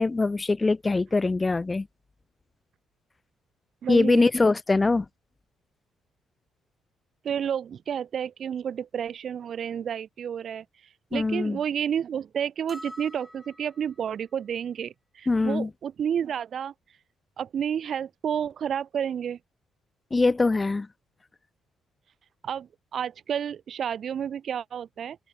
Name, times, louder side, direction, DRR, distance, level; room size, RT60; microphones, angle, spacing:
voice 1, 0.0-1.9 3.9-5.0 11.1-11.6 15.3-15.7 20.1-20.9, left 3 dB, 25° left, 3.0 m, -23 dB
voice 2, 3.8-4.3 7.2-10.6 11.1-16.7 17.4-19.4 22.4-25.2, right 8 dB, 60° right, 2.5 m, -30 dB
sound 1, 12.7-14.0, left 1 dB, 5° left, 5.0 m, -45 dB
open air
cardioid pair, 90°, 0 cm